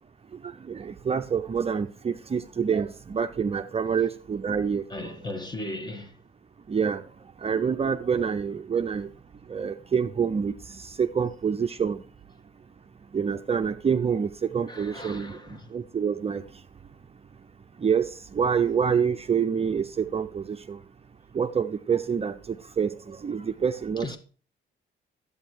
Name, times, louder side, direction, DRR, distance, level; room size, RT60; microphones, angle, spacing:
voice 1, 0.3-4.8 6.7-7.0 7.4-9.1 9.5-12.0 13.1-16.4 17.8-20.8 21.3-24.2, right 6 dB, 30° right, 0.6 m, -27 dB
voice 2, 4.9-6.2 14.7-15.7 24.0-24.2, left 1 dB, 20° left, 1.5 m, -37 dB
11.0 x 8.6 x 4.5 m
cardioid pair, 90°, 20 cm